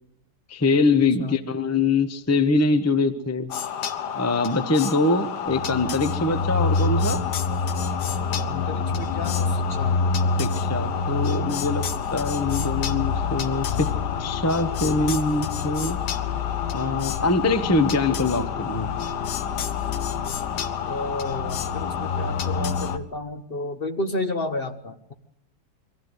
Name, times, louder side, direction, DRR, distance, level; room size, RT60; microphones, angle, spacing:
voice 1, 0.5-3.5 4.1-7.2 10.4-11.8 12.1-13.9 14.2-16.0 16.7-18.9, left 3 dB, 15° left, 10 dB, 0.8 m, -23 dB
sound 1, 3.5-23.0, left 5 dB, 85° left, 1.6 m, -27 dB
voice 2, 8.5-10.0 20.9-25.1, left 2 dB, 40° left, 7 dB, 1.1 m, -31 dB
22.5 x 15.0 x 8.0 m, 0.78 s
omnidirectional pair, 1.8 m